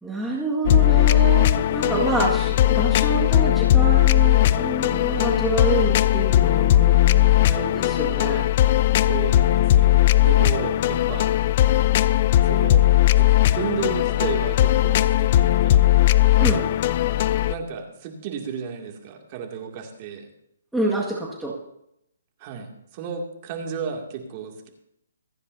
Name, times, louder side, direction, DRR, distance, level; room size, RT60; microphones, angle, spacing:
voice 1, 0.0-8.5 16.4-16.7 20.7-21.6, right 2 dB, 5° right, -5 dB, 1.9 m, -27 dB
sound 1, 0.7-17.6, left 14 dB, 40° left, 0.4 m, -18 dB
voice 2, 1.8-2.3 9.0-11.3 12.4-12.8 13.1-15.8 17.5-20.3 22.4-24.7, right 7 dB, 35° right, 2 dB, 2.5 m, -33 dB
26.5 x 9.8 x 2.8 m, 0.77 s
hypercardioid pair, 150°, 0 cm